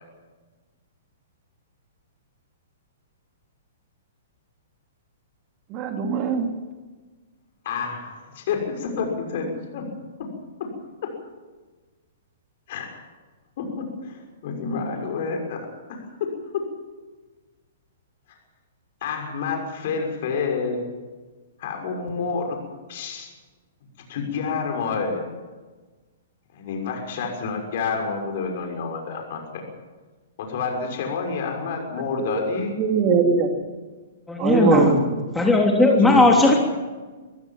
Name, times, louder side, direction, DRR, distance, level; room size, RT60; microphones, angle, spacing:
voice 1, 5.7-6.5 32.2-32.3 32.8-33.5 34.4-35.2, right 5 dB, 35° right, 4 dB, 2.8 m, -21 dB
voice 2, 7.6-9.8 12.7-12.9 13.6-15.6 15.9-16.0 19.0-20.8 21.6-22.6 22.9-23.3 24.1-25.2 26.5-29.6 30.4-32.7 36.0-36.3, left 5 dB, 50° left, 2 dB, 6.3 m, -28 dB
voice 3, 34.3-34.9 35.3-36.5, left 2 dB, 5° left, -1 dB, 3.2 m, -17 dB
24.0 x 15.5 x 7.6 m, 1.3 s
figure-of-eight pair, 115°, 0 cm